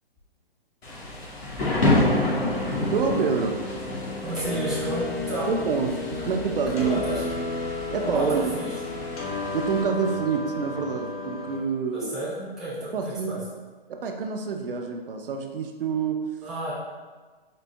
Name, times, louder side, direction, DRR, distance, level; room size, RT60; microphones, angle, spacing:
Thunder / Rain, 0.8-9.8, left 1 dB, 80° left, 1.3 m, -29 dB
sound 1, 2.0-11.6, left 3 dB, 35° left, 0.7 m, -33 dB
voice 1, 2.9-3.6 5.5-7.0 7.9-8.5 9.5-12.2 12.9-13.4 13.9-16.2, right 6 dB, 65° right, 3 dB, 0.6 m, -27 dB
voice 2, 4.2-5.5 6.7-7.2 8.0-9.1 11.9-13.4 16.4-16.7, right 1 dB, ahead, -9 dB, 0.5 m, -32 dB
4.0 x 2.2 x 3.3 m, 1.4 s
hypercardioid pair, 135°, 30 cm